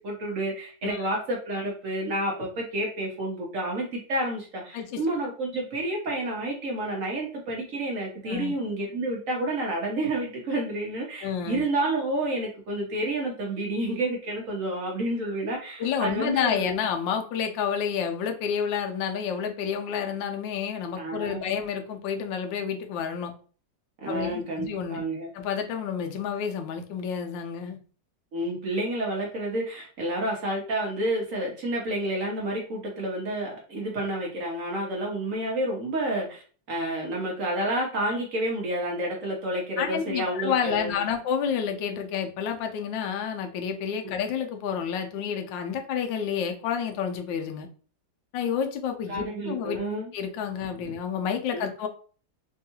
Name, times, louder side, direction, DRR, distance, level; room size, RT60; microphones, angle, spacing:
voice 1, 0.0-16.8 21.0-21.5 24.0-25.3 28.3-36.4 36.7-40.9 49.1-50.1 50.8-50.9 51.5-51.7, right 1 dB, 60° right, -1 dB, 0.9 m, -30 dB
voice 2, 11.2-11.6 15.8-23.3 24.1-25.0 25.3-27.8 39.8-47.7 48.3-49.8 50.1-51.9, left 7 dB, 85° left, 5 dB, 1.3 m, -29 dB
3.5 x 2.3 x 2.7 m, 0.40 s
omnidirectional pair, 2.0 m